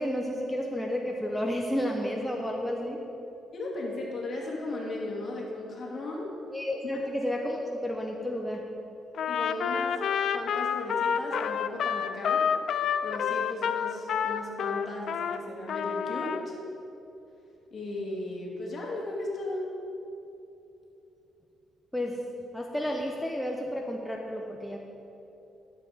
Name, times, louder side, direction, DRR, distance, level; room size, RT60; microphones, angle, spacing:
voice 1, 0.0-3.0 6.5-8.7 21.9-22.2 22.5-24.8, equal, 5° left, 0 dB, 0.9 m, -31 dB
voice 2, 3.5-6.3 9.3-10.0 10.3-12.5 13.0-16.6 17.7-19.7, left 2 dB, 45° left, -2 dB, 2.5 m, -36 dB
Trumpet, 9.1-15.4 15.7-16.4, left 7 dB, 65° left, 0.4 m, -29 dB
12.0 x 7.8 x 5.1 m, 2.9 s
cardioid pair, 90°, 0 cm